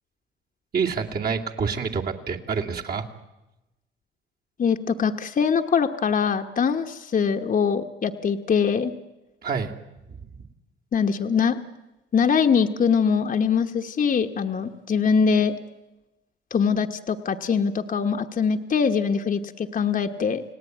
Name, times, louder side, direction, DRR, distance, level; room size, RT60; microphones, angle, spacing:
voice 1, 0.7-3.0 9.4-9.7 10.1-10.3, right 5 dB, 50° right, 1 dB, 2.6 m, -27 dB
voice 2, 4.6-8.9 10.9-11.6 12.1-15.5 16.5-20.4, left 6 dB, 45° left, 5 dB, 1.2 m, -23 dB
29.5 x 18.0 x 9.2 m, 1.0 s
cardioid pair, 90°, 20 cm